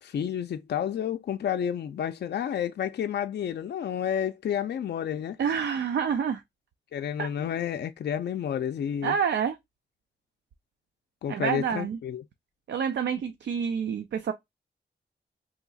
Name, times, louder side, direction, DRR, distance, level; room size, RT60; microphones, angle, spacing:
voice 1, 0.0-5.4 6.9-9.2 11.2-12.2, left 9 dB, 70° left, 0.4 m, -30 dB
voice 2, 5.4-6.4 7.2-7.3 9.0-9.6 11.3-12.0 12.7-14.3, right 7 dB, 80° right, 0.4 m, -28 dB
2.9 x 2.3 x 3.8 m
cardioid pair, 60°, 18 cm